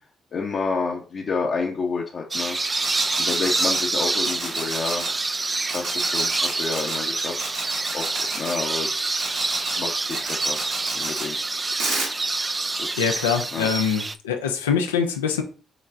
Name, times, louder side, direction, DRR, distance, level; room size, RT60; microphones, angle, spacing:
voice 1, 0.3-2.6 3.2-5.1 5.6-7.3 7.9-10.6 10.9-11.4 12.8-12.9 13.5-13.7, left 4 dB, 55° left, -2 dB, 0.9 m, -29 dB
sound 1, 2.3-14.2, right 3 dB, 30° right, 0.4 m, -27 dB
sound 2, 2.8-3.8 4.2-5.1 5.7-7.0 7.4-8.6 9.2-9.8 10.1-11.3 11.8-12.1, right 2 dB, 80° right, 2.5 m, -31 dB
voice 2, 13.0-15.4, left 7 dB, 90° left, 5 dB, 0.6 m, -24 dB
6.1 x 3.1 x 2.6 m, 0.36 s
hypercardioid pair, 45°, 0 cm